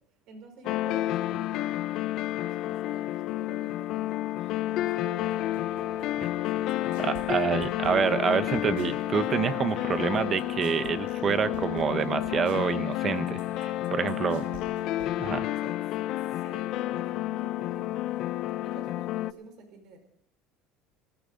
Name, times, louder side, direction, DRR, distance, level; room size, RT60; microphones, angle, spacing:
voice 1, 0.3-1.8 2.3-7.1 14.5-14.9 15.5-15.8 16.1-18.3 18.6-20.0, right 3 dB, 65° right, 5 dB, 5.3 m, -50 dB
sound 1, 0.6-19.3, left 15 dB, 60° left, 0.5 m, -30 dB
sound 2, 5.2-15.5, right 10 dB, 90° right, 1.5 m, -49 dB
voice 2, 7.0-14.5 15.2-15.5, right 7 dB, 35° right, 13 dB, 1.0 m, -27 dB
19.5 x 14.5 x 3.9 m, 0.81 s
supercardioid pair, 105°, 0 cm